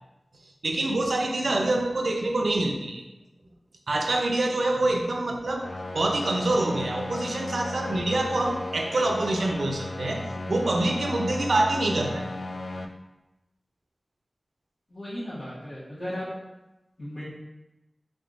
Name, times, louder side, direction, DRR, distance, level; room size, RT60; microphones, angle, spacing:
voice 1, 0.6-3.0 3.9-5.7 5.9-12.3, right 2 dB, 90° right, 2 dB, 0.5 m, -26 dB
sound 1, 5.6-12.8, left 2 dB, 90° left, 0.3 m, -35 dB
voice 2, 14.9-16.3 17.0-17.2, left 1 dB, 75° left, -11 dB, 1.2 m, -35 dB
4.0 x 3.5 x 2.5 m, 0.98 s
wide cardioid pair, 45°, 0 cm